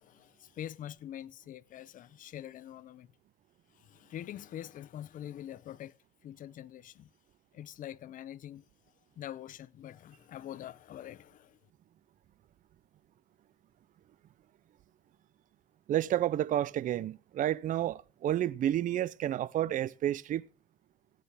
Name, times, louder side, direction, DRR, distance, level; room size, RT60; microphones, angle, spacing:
voice 1, 0.0-3.1 3.7-6.0 6.2-7.1 7.5-8.6 9.2-11.6, left 11 dB, 50° left, 0.6 m, -45 dB
voice 2, 15.9-20.5, right 12 dB, 50° right, 0.5 m, -30 dB
16.5 x 9.3 x 3.5 m
cardioid pair, 110°, 17 cm